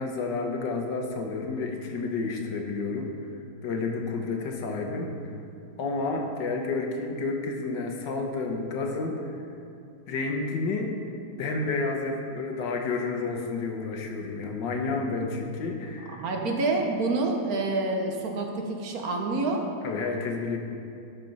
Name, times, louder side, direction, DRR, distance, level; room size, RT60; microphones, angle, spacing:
voice 1, 0.0-3.1 3.6-5.1 5.8-9.3 10.1-10.9 11.4-16.2 19.8-20.6, left 3 dB, 85° left, 2 dB, 1.6 m, -30 dB
voice 2, 16.1-19.7, right 3 dB, 60° right, 2 dB, 1.3 m, -27 dB
12.0 x 4.5 x 5.3 m, 2.6 s
omnidirectional pair, 1.8 m